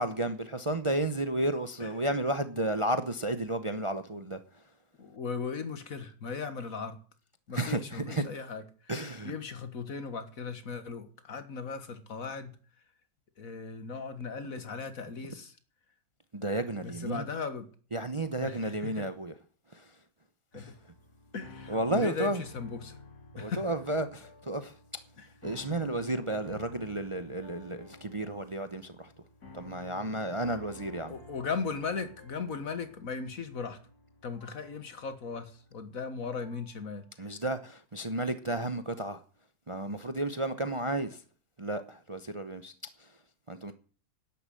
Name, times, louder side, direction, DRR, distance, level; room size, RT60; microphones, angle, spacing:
voice 1, 0.0-4.4 7.5-8.2 8.9-9.3 16.3-17.2 17.9-19.3 19.7-19.9 20.5-20.7 21.7-22.4 23.3-25.0 25.4-29.1 29.5-31.1 37.2-39.2 39.7-41.2 41.6-42.7 43.0-43.1 43.5-43.7, right 1 dB, 25° right, 0.8 m, -32 dB
voice 2, 5.0-7.0 7.5-8.9 9.2-12.6 13.4-15.6 16.8-17.7 18.4-19.1 20.5-20.7 21.3-23.0 23.4-23.7 25.2-25.3 31.1-33.8 34.2-37.3, left 5 dB, 65° left, 1.9 m, -37 dB
sound 1, 20.5-36.8, left 3 dB, 80° left, 3.7 m, -52 dB
12.0 x 10.5 x 7.7 m
omnidirectional pair, 1.6 m